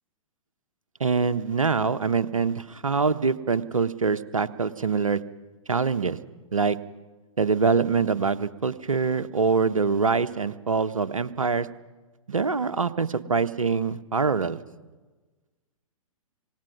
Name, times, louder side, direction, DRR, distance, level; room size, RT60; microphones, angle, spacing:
voice 1, 1.0-5.2 5.7-6.2 6.5-6.8 7.4-11.7 12.3-14.6, right 5 dB, 75° right, 13 dB, 1.0 m, -24 dB
26.5 x 18.0 x 6.1 m, 1.3 s
figure-of-eight pair, 115°, 18 cm